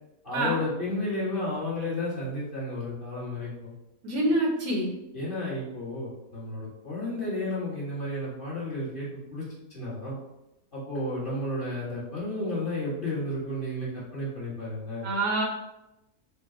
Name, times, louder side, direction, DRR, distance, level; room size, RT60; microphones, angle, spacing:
voice 1, 0.2-3.7 5.1-9.4 9.7-10.2 10.7-15.1, left 1 dB, 35° left, -8 dB, 1.4 m, -32 dB
voice 2, 4.0-4.9 15.0-15.4, right 1 dB, 70° right, -1 dB, 1.2 m, -26 dB
4.4 x 2.1 x 3.6 m, 0.91 s
omnidirectional pair, 1.6 m